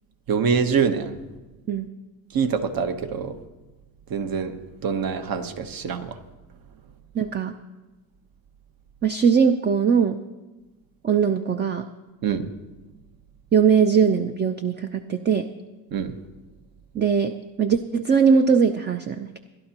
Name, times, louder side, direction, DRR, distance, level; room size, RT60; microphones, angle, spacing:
voice 1, 0.3-1.2 2.3-3.3 4.1-4.5 4.8-6.2 12.2-12.4 15.9-16.1, right 6 dB, 50° right, 8 dB, 1.2 m, -24 dB
voice 2, 7.1-7.6 9.0-10.2 11.0-11.8 13.5-15.5 16.9-19.4, right 6 dB, 25° right, 7 dB, 0.5 m, -20 dB
22.0 x 11.5 x 3.0 m, 1.1 s
cardioid pair, 95°, 45 cm